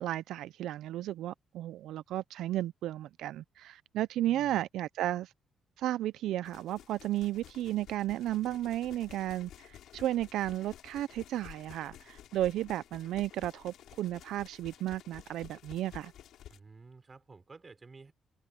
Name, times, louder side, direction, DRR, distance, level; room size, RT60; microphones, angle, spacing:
voice 1, 0.0-5.3 5.8-16.1, right 13 dB, 85° right, 0.4 m, -34 dB
voice 2, 4.2-4.6 16.5-18.1, right 4 dB, 25° right, 3.8 m, -53 dB
sound 1, 6.4-16.6, left 11 dB, 80° left, 3.1 m, -53 dB
cardioid pair, 120°, 0 cm